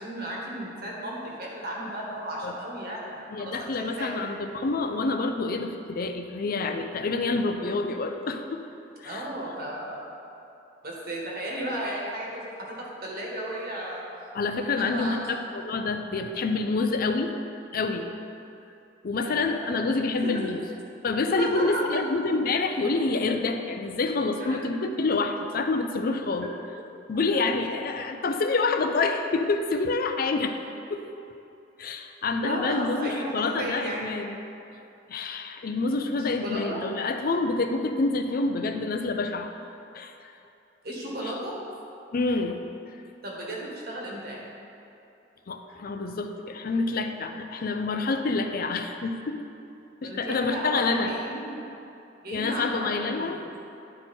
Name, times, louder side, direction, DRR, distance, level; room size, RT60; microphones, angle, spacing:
voice 1, 0.0-4.2 9.0-10.1 10.8-14.0 14.8-15.2 19.2-19.7 20.2-20.5 21.4-22.0 24.4-24.6 27.3-27.5 32.4-34.1 36.1-36.8 40.8-41.5 43.2-44.4 50.0-51.7 52.2-53.4, right 1 dB, 55° right, -3 dB, 1.6 m, -34 dB
voice 2, 3.3-8.6 9.0-9.3 14.3-17.4 17.7-18.1 19.0-20.6 21.0-26.5 27.1-30.6 30.9-31.0 31.8-34.4 35.1-39.5 39.9-40.1 42.1-42.6 45.5-49.4 50.0-51.1 52.3-53.5, left 3 dB, 55° left, 6 dB, 0.5 m, -27 dB
11.0 x 4.5 x 4.4 m, 2.7 s
head